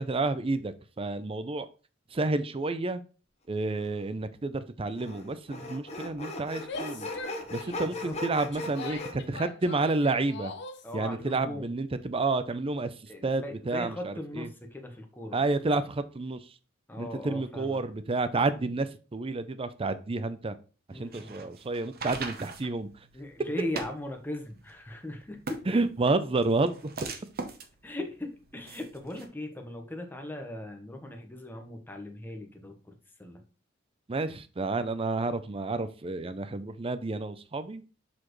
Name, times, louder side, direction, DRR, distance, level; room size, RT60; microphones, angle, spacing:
voice 1, 0.0-1.7 2.1-3.0 3.5-7.1 7.5-10.5 10.9-12.9 13.2-14.5 15.3-16.5 17.0-20.6 20.9-22.9 25.7-26.9 34.1-37.8, right 3 dB, 30° right, 0.5 m, -30 dB
Sawing, 3.8-3.9 5.0-9.1, left 2 dB, 35° left, 1.1 m, -38 dB
Female speech woman speaking / Yell, 6.6-10.9, left 4 dB, 60° left, 0.7 m, -42 dB
voice 2, 7.8-8.2 10.8-11.7 13.1-15.4 16.9-17.8 20.9-21.4 23.1-25.8 27.8-33.4, left 1 dB, 10° left, 1.1 m, -39 dB
sound 1, 20.9-29.3, right 4 dB, 50° right, 0.9 m, -41 dB
7.4 x 4.3 x 3.1 m
head